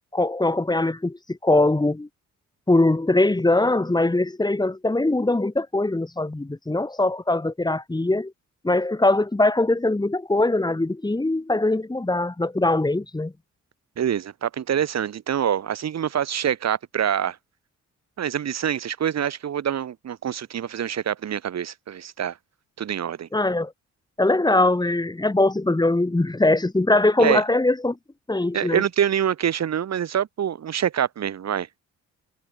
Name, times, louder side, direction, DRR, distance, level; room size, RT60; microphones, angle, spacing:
voice 1, 0.1-2.1 2.7-8.3 8.6-13.3 23.3-23.7 24.2-28.0 28.3-28.8, left 2 dB, 15° left, 3.9 m, -21 dB
voice 2, 14.0-17.4 18.2-22.4 22.8-23.3 27.2-27.4 28.5-31.7, right 9 dB, 60° right, 5.8 m, -25 dB
cardioid pair, 90°, 30 cm